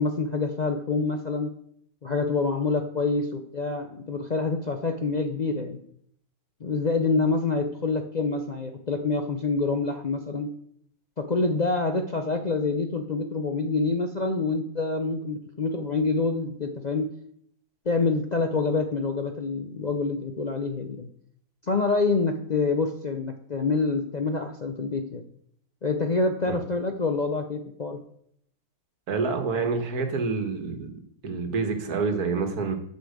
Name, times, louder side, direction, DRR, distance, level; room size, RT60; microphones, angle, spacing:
voice 1, 0.0-1.5 2.0-5.8 6.6-10.5 11.2-17.1 17.9-21.1 21.6-25.2 25.8-28.0, left 3 dB, 45° left, 5 dB, 0.6 m, -26 dB
voice 2, 29.1-30.9 31.2-32.7, right 4 dB, 80° right, 6 dB, 1.8 m, -27 dB
8.2 x 5.6 x 7.8 m, 0.67 s
omnidirectional pair, 1.6 m